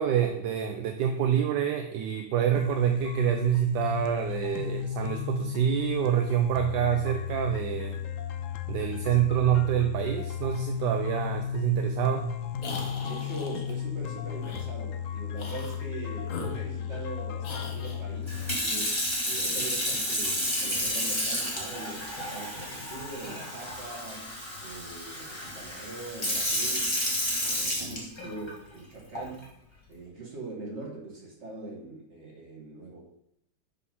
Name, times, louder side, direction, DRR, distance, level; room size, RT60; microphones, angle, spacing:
voice 1, 0.0-8.0 8.7-12.3, right 10 dB, 75° right, 5 dB, 1.2 m, -27 dB
sound 1, 2.5-18.6, left 9 dB, 70° left, 0.8 m, -34 dB
sound 2, 12.6-13.8 14.4-14.7 15.3-15.8 16.2-17.1 17.4-18.0, left 4 dB, 55° left, 1.4 m, -40 dB
voice 2, 12.7-24.3 24.6-27.0 27.4-29.5 29.9-33.0, right 3 dB, 40° right, -3 dB, 2.4 m, -42 dB
Sink (filling or washing) / Fill (with liquid), 18.3-28.5 29.1-29.4, equal, 15° left, 2.0 m, -31 dB
6.5 x 5.4 x 5.5 m, 0.76 s
omnidirectional pair, 1.9 m